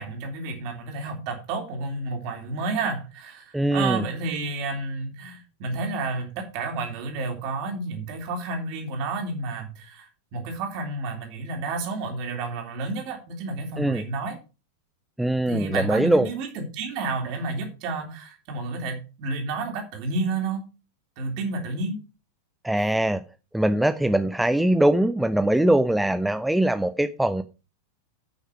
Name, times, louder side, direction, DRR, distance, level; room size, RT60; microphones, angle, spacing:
voice 1, 0.0-14.4 15.5-20.6 21.2-22.0 22.8-22.9, right 3 dB, 45° right, 4 dB, 3.4 m, -31 dB
voice 2, 3.5-4.0 13.8-14.0 15.2-16.3 22.6-23.2 23.5-27.4, right 1 dB, 5° right, 10 dB, 0.6 m, -22 dB
9.5 x 6.5 x 6.2 m, 0.32 s
figure-of-eight pair, 90°, 0 cm